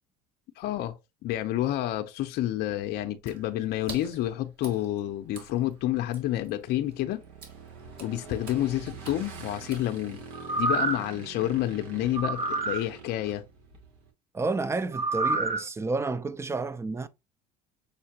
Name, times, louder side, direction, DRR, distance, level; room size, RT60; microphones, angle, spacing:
voice 1, 0.6-7.2 8.0-10.2 10.6-13.4, left 13 dB, 60° left, 0.6 m, -29 dB
Water / Splash splatter, 3.2-10.4, right 4 dB, 60° right, 1.9 m, -48 dB
Motorcycle / Engine, 4.4-14.1, right 4 dB, 85° right, 1.3 m, -46 dB
sound 1, 10.3-11.1 12.1-12.8 14.9-15.6 16.1-16.2, right 3 dB, 35° right, 1.1 m, -28 dB
voice 2, 14.3-17.1, right 3 dB, 15° right, 0.4 m, -30 dB
6.5 x 2.8 x 2.8 m
supercardioid pair, 90°, 19 cm